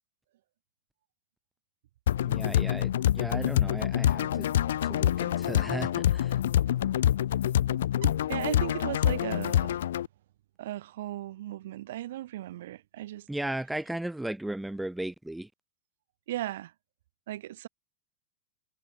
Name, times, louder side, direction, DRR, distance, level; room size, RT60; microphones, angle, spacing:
sound 1, 2.1-10.1, left 11 dB, 60° left, 0.3 m, -26 dB
voice 1, 2.3-4.5 4.9-6.3 13.3-15.5, right 1 dB, 5° right, 0.6 m, -36 dB
voice 2, 8.0-9.8 10.6-13.8 16.3-16.7 17.3-17.7, right 14 dB, 55° right, 1.8 m, -37 dB
figure-of-eight pair, 90°, 0 cm